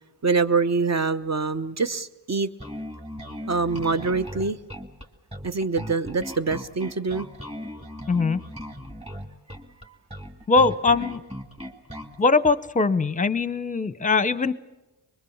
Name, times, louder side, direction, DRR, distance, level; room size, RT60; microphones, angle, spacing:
voice 1, 0.2-2.5 3.5-4.6 5.4-7.3, right 4 dB, 35° right, 10 dB, 0.9 m, -25 dB
Bass guitar, 2.6-12.2, equal, 15° right, 2.1 m, -38 dB
voice 2, 8.1-8.4 10.5-11.2 12.2-14.5, left 4 dB, 15° left, 15 dB, 0.8 m, -21 dB
23.0 x 22.0 x 7.2 m, 1.1 s
wide cardioid pair, 100°, 45 cm